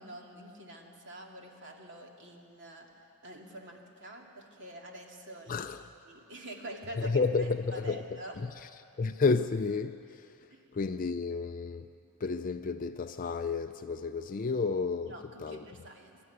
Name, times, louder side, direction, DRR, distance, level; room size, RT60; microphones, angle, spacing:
voice 1, 0.0-2.9 3.2-5.7 6.1-8.4 10.5-10.6 15.1-16.2, right 1 dB, 55° right, 2.5 m, -46 dB
voice 2, 5.5-5.9 7.0-8.7 9.0-10.3 10.7-11.9 12.2-15.6, left 4 dB, 40° left, 0.4 m, -31 dB
24.0 x 12.5 x 9.5 m
head